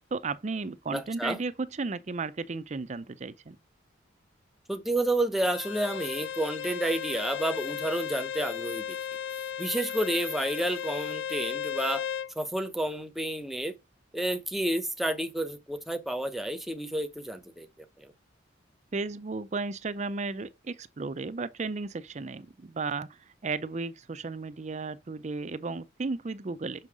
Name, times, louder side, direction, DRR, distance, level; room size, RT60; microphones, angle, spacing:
voice 1, 0.1-3.6 18.9-26.9, right 3 dB, 35° right, 0.5 m, -34 dB
voice 2, 0.9-1.4 4.7-9.0 9.6-12.0 12.4-13.7 14.1-17.7 18.0-18.1, right 1 dB, ahead, 0.8 m, -30 dB
Bowed string instrument, 5.4-12.3, left 8 dB, 75° left, 0.5 m, -35 dB
6.3 x 5.3 x 4.8 m
head